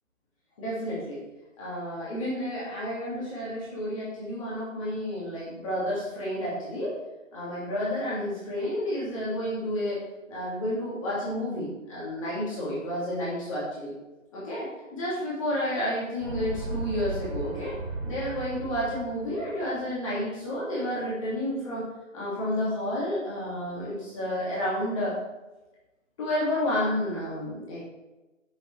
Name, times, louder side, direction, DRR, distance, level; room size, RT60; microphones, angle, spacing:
voice 1, 0.6-1.2 1.6-7.0 7.3-10.0 10.3-13.9 14.3-17.8 18.0-21.9 22.1-25.2 26.2-27.8, left 1 dB, 25° left, -8 dB, 2.5 m, -30 dB
sound 1, 16.2-19.8, right 2 dB, 40° right, 2.1 m, -35 dB
8.8 x 6.9 x 3.4 m, 1.1 s
figure-of-eight pair, 150°, 40 cm